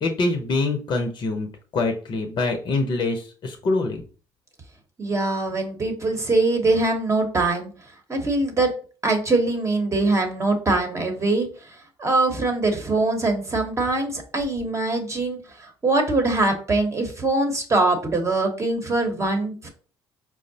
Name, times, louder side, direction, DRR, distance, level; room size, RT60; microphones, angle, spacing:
voice 1, 0.0-4.0, left 3 dB, 45° left, 4 dB, 0.6 m, -25 dB
voice 2, 5.0-7.7 8.1-8.7 9.0-11.5 12.0-19.7, right 2 dB, 30° right, 4 dB, 0.9 m, -23 dB
4.5 x 2.0 x 2.7 m, 0.39 s
supercardioid pair, 70°, 10 cm